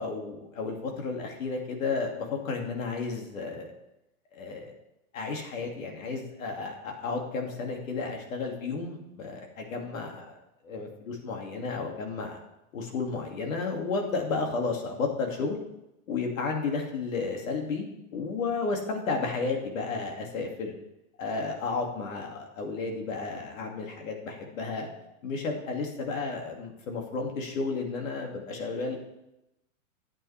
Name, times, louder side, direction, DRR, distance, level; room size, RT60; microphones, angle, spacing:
voice 1, 0.0-3.7 4.3-4.7 5.1-10.4 10.6-12.4 12.7-15.6 16.1-17.9 18.1-20.7 21.2-24.9 25.2-29.0, left 4 dB, 65° left, 1 dB, 2.4 m, -32 dB
11.0 x 8.7 x 3.4 m, 0.89 s
supercardioid pair, 165°, 42 cm